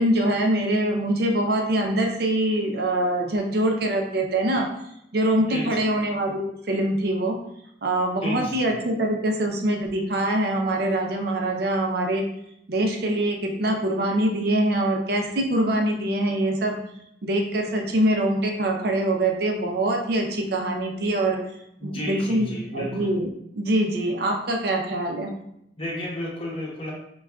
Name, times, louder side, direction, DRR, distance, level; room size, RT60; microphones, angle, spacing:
voice 1, 0.0-4.7 5.1-7.4 7.8-12.2 12.7-16.8 17.2-21.4 21.8-22.5 22.7-23.3 23.5-25.3, right 1 dB, 60° right, 2 dB, 0.6 m, -24 dB
voice 2, 5.3-5.7 8.2-8.6 21.8-23.1 25.8-26.9, left 1 dB, 30° left, -3 dB, 0.8 m, -32 dB
5.3 x 2.2 x 2.3 m, 0.76 s
head